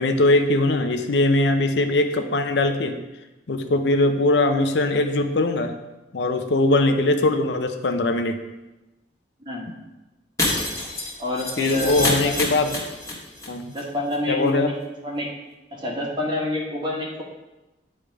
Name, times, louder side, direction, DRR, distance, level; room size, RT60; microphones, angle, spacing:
voice 1, 0.0-3.0 3.5-5.7 6.1-8.4 11.6-12.8 13.5-13.7 14.3-14.7, left 2 dB, 75° left, 7 dB, 0.6 m, -21 dB
Shatter, 10.4-13.5 13.7-13.8 14.1-14.2, left 2 dB, 20° left, 1.6 m, -27 dB
voice 2, 11.2-12.3 13.7-15.3 15.7-17.2, left 1 dB, 25° right, -2 dB, 1.4 m, -28 dB
9.5 x 3.4 x 4.8 m, 1.0 s
head